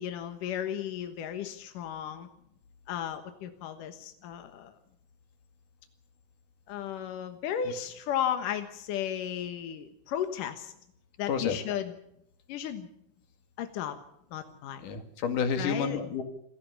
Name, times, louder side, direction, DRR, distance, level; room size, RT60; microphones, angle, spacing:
voice 1, 0.0-2.3 2.9-4.7 6.7-10.7 11.2-11.9 12.5-12.9 13.6-14.0 14.3-14.9 15.6-16.0, left 9 dB, 70° left, 7 dB, 2.0 m, -34 dB
voice 2, 11.3-11.6 14.8-16.2, left 6 dB, 50° left, 7 dB, 3.1 m, -30 dB
28.0 x 15.0 x 7.0 m, 0.76 s
omnidirectional pair, 5.6 m